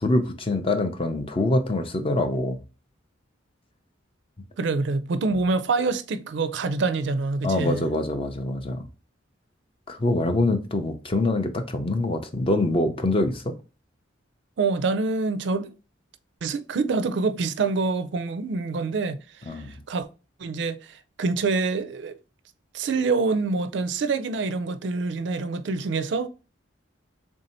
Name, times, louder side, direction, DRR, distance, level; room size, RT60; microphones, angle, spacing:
voice 1, 0.0-2.6 7.4-8.8 9.9-13.5 19.5-19.8, left 2 dB, 25° left, 0.5 m, -24 dB
voice 2, 4.6-7.9 14.6-15.7 16.4-20.1 20.4-22.2 22.7-26.3, right 4 dB, 60° right, 0.4 m, -26 dB
3.5 x 2.6 x 4.1 m
head